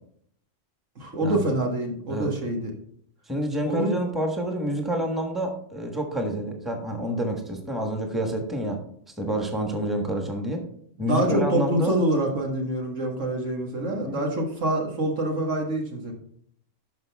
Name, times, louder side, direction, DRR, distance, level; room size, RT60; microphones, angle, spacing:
voice 1, 1.0-2.7 3.7-3.9 11.0-16.1, right 1 dB, 80° right, 1 dB, 2.0 m, -26 dB
voice 2, 3.3-8.8 9.2-10.6 11.0-11.9 14.0-14.2, right 1 dB, ahead, 3 dB, 1.2 m, -28 dB
12.0 x 5.4 x 3.4 m, 0.65 s
omnidirectional pair, 1.3 m